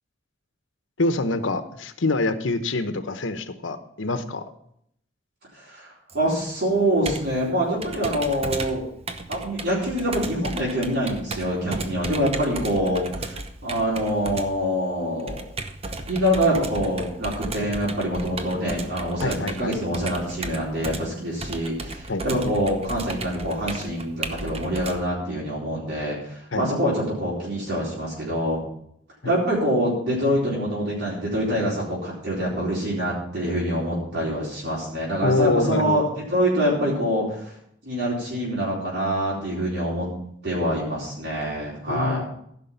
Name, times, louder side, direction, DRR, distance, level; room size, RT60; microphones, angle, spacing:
voice 1, 1.0-4.5 19.2-19.7 22.1-22.2 26.5-26.7 29.2-29.3 35.2-36.0 41.9-42.2, left 2 dB, 90° left, 9 dB, 1.0 m, -25 dB
voice 2, 5.5-8.9 9.3-15.4 16.1-28.6 29.2-37.6 37.8-40.1 40.4-42.2, equal, 60° right, -6 dB, 4.2 m, -25 dB
Computer keyboard, 6.1-25.0, right 2 dB, 30° right, 0.9 m, -35 dB
15.0 x 6.1 x 5.8 m, 0.70 s
head